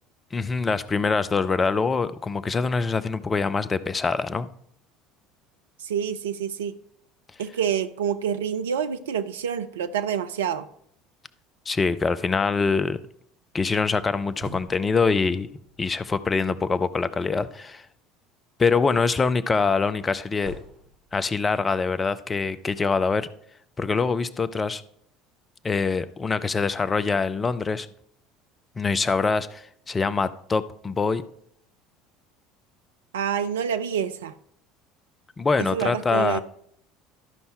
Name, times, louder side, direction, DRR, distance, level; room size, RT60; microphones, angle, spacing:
voice 1, 0.3-4.5 11.7-13.0 13.5-15.5 15.8-17.8 18.6-20.5 21.1-23.3 23.8-24.8 25.6-27.9 28.8-31.2 35.4-36.4, left 4 dB, 25° left, 0.6 m, -24 dB
voice 2, 5.8-6.8 7.4-10.7 33.1-34.3 35.6-36.4, right 8 dB, 70° right, 0.6 m, -27 dB
sound 1, 13.8-17.0 19.2-21.7, right 1 dB, 35° right, 4.3 m, -47 dB
12.5 x 5.5 x 4.4 m
figure-of-eight pair, 65°, 0 cm